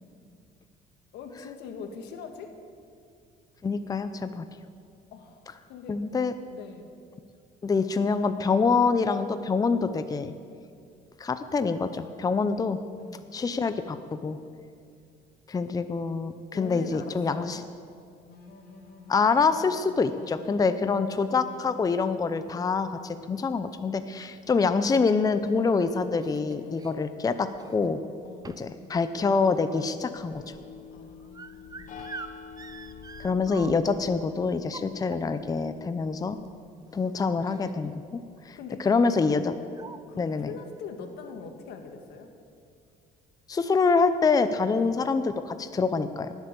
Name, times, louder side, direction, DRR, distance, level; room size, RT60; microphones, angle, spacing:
voice 1, 1.1-2.5 5.1-6.1 6.5-6.9 13.0-13.3 16.5-17.5 20.6-21.1 23.1-23.4 26.6-27.0 28.2-28.9 30.9-32.0 34.0-34.1 38.5-39.5 40.1-42.3 44.7-44.9, left 5 dB, 80° left, 5 dB, 1.7 m, -43 dB
voice 2, 3.6-4.4 5.9-6.3 7.6-10.3 11.2-12.8 13.3-14.4 15.5-17.6 19.1-28.0 28.6-30.4 33.2-36.4 36.9-39.5 40.2-40.5 43.5-46.3, left 4 dB, 20° left, 10 dB, 0.6 m, -26 dB
sound 1, 18.3-23.9, left 3 dB, 65° left, 2.9 m, -50 dB
sound 2, 25.5-26.9 27.5-28.0 28.4-28.8 29.1-34.0 34.6-35.6 36.5-36.6 36.9-37.1 37.4-37.9 38.1-38.4 39.3-39.4 39.7-40.0, right 4 dB, 20° right, 0.7 m, -46 dB
sound 3, 30.3-36.6, left 6 dB, 50° left, 0.9 m, -46 dB
18.5 x 8.1 x 6.9 m, 2.4 s
cardioid pair, 110°, 17 cm